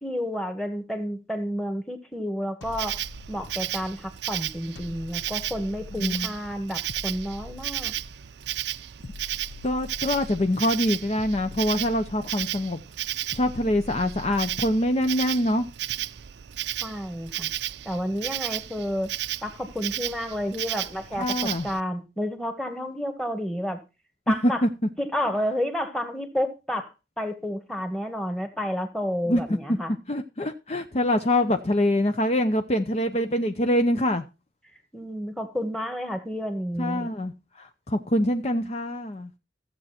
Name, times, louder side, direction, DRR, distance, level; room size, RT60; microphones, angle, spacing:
voice 1, 0.0-3.0 3.3-7.9 16.8-17.5 17.9-19.1 19.4-23.8 24.3-24.6 25.0-26.9 27.2-29.9 34.9-37.1, equal, 5° left, 1.7 m, -30 dB
sound 1, 2.6-3.9 4.8-6.4 6.9-8.3 9.0-10.6 11.2-12.6 13.3-14.9, left 3 dB, 80° left, 0.7 m, -44 dB
Insect, 2.6-21.8, right 13 dB, 70° right, 0.5 m, -34 dB
voice 2, 9.6-12.8 13.3-15.7 21.2-21.7 24.3-24.7 29.3-29.4 30.1-34.2 36.8-39.3, left 1 dB, 35° left, 0.7 m, -24 dB
15.0 x 7.7 x 4.3 m
head